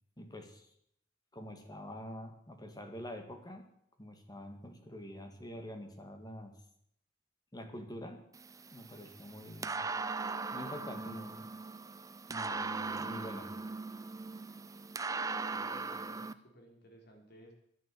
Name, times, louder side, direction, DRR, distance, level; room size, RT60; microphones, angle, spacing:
voice 1, 0.2-0.7 1.3-3.7 4.0-6.6 7.5-8.3 8.7-9.8 10.5-11.5 12.3-13.5, equal, 20° left, 5 dB, 1.8 m, -46 dB
sound 1, 8.3-16.3, right 4 dB, 20° right, 0.5 m, -39 dB
voice 2, 15.4-17.5, right 1 dB, 55° left, 2 dB, 3.5 m, -58 dB
11.0 x 9.2 x 8.4 m, 0.71 s
head